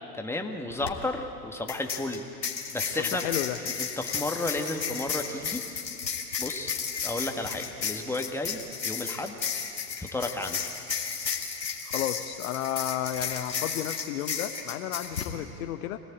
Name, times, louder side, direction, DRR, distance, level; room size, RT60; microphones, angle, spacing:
voice 1, 0.1-2.3 2.7-3.3 3.6-5.8 6.4-6.7 7.0-9.3 10.0-10.7, left 2 dB, 5° left, 4 dB, 1.7 m, -33 dB
sound 1, 0.7-0.9 1.7-15.3, left 6 dB, 80° left, 2.4 m, -33 dB
voice 2, 3.0-3.6 11.8-16.0, left 12 dB, 55° left, 8 dB, 1.1 m, -32 dB
25.0 x 18.5 x 8.6 m, 2.9 s
figure-of-eight pair, 95°, 50 cm